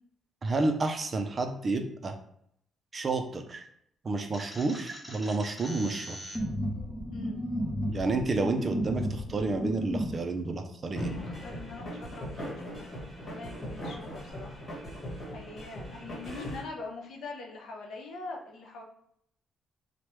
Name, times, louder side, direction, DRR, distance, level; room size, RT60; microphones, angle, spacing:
voice 1, 0.4-2.2 2.9-3.6 4.0-6.2 7.9-11.1, right 3 dB, 35° right, 6 dB, 0.4 m, -30 dB
sound 1, 4.3-10.1, equal, 15° left, 0.6 m, -34 dB
voice 2, 7.1-7.5 11.1-12.9 13.2-14.6 15.3-18.8, left 3 dB, 75° left, 1 dB, 0.6 m, -43 dB
sound 2, 11.0-16.6, equal, 35° left, 1.2 m, -39 dB
3.0 x 2.1 x 3.0 m, 0.71 s
cardioid pair, 90°, 0 cm